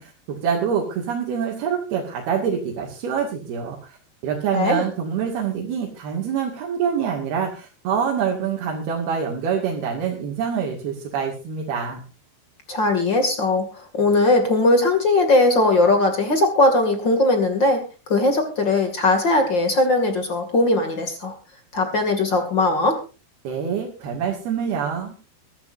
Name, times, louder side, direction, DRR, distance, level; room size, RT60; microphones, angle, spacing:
voice 1, 0.0-4.0 4.2-12.0 23.4-25.2, right 7 dB, 65° right, -1 dB, 4.1 m, -26 dB
voice 2, 4.5-4.8 12.7-21.3 21.7-23.0, left 2 dB, 35° left, 6 dB, 2.4 m, -19 dB
23.0 x 13.5 x 2.7 m, 0.32 s
omnidirectional pair, 4.9 m